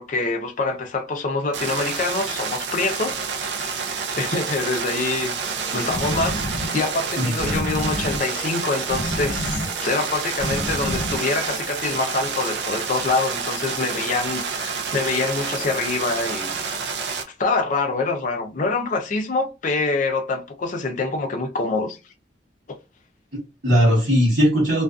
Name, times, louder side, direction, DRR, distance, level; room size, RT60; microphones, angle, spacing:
voice 1, 0.0-3.2 4.1-5.3 5.7-16.6 17.4-22.0, left 3 dB, 45° left, 0.5 m, -25 dB
sound 1, 1.5-17.2, right 5 dB, 70° right, 0.5 m, -29 dB
sound 2, 5.6-11.5, left 1 dB, 15° left, 1.1 m, -30 dB
voice 2, 7.2-7.6 23.3-24.8, equal, 55° right, 1.0 m, -19 dB
2.4 x 2.4 x 2.3 m
head